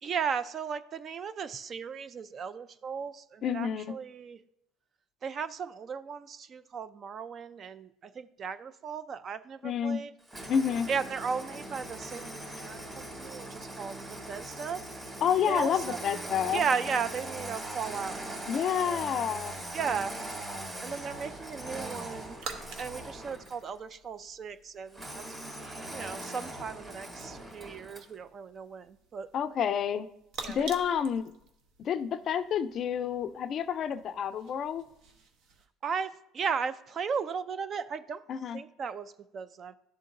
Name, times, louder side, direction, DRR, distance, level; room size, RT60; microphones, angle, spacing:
voice 1, 0.0-4.4 5.2-10.1 10.9-14.8 15.5-16.3 16.5-19.0 19.7-20.1 20.8-22.4 22.8-29.3 30.4-30.7 35.8-38.2 38.5-39.7, right 6 dB, 40° right, 14 dB, 0.4 m, -36 dB
voice 2, 3.4-3.9 9.6-10.0 10.5-10.9 15.2-16.6 18.5-19.6 29.3-30.1 30.5-31.3 31.8-34.8 38.3-38.6, left 8 dB, 45° left, 12 dB, 0.4 m, -29 dB
Engine starting, 10.3-23.7 24.9-28.1, right 1 dB, 20° right, 1.9 m, -41 dB
sound 1, 17.3-35.7, right 4 dB, 65° right, 0.9 m, -50 dB
11.5 x 3.8 x 2.5 m, 0.83 s
supercardioid pair, 110°, 0 cm